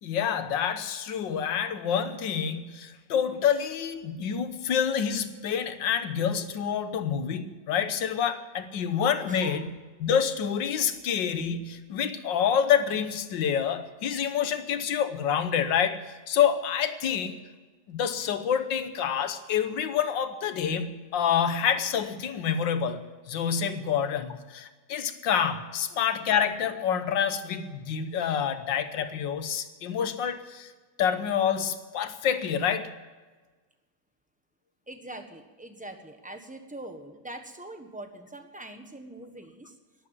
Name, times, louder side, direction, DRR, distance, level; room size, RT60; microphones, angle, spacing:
voice 1, 0.0-9.7 10.0-17.4 17.9-30.7 31.0-32.9, left 8 dB, 90° left, 11 dB, 1.7 m, -27 dB
voice 2, 9.3-9.7 34.9-39.8, right 1 dB, 5° right, 6 dB, 1.1 m, -43 dB
12.0 x 11.0 x 9.1 m, 1.3 s
omnidirectional pair, 1.9 m